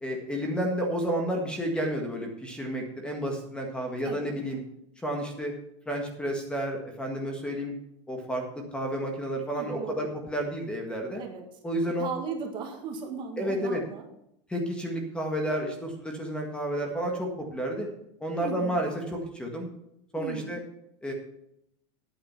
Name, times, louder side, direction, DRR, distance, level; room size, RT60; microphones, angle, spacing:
voice 1, 0.0-4.6 5.0-5.5 5.9-7.7 8.1-11.3 11.6-12.1 13.4-13.8 14.5-17.9 18.2-19.7 20.1-20.6 21.0-21.1, right 1 dB, 5° left, 2 dB, 1.7 m, -31 dB
voice 2, 4.0-4.4 9.5-10.1 11.1-11.4 12.0-14.0 18.4-18.9 20.2-20.6, right 5 dB, 30° right, 3 dB, 1.7 m, -37 dB
10.0 x 9.0 x 5.9 m, 0.79 s
supercardioid pair, 155°, 16 cm